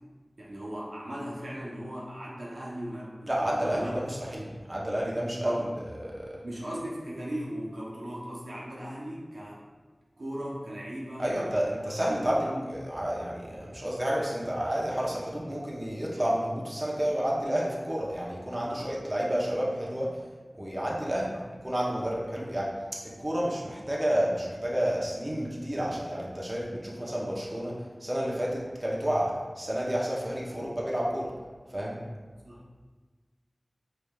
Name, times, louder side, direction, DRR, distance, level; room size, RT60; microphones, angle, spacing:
voice 1, 0.4-4.2 5.4-5.7 6.4-9.6 10.2-11.5 11.8-12.6 18.7-18.9 21.3-21.4 32.4-32.6, equal, 85° right, -6 dB, 0.8 m, -38 dB
voice 2, 3.3-6.4 11.2-12.4 12.7-20.1 20.6-21.3 21.6-22.7 23.0-27.8 28.0-31.3 31.7-32.0, equal, 30° right, -4 dB, 0.7 m, -30 dB
4.8 x 3.2 x 2.3 m, 1.4 s
wide cardioid pair, 50°, 0 cm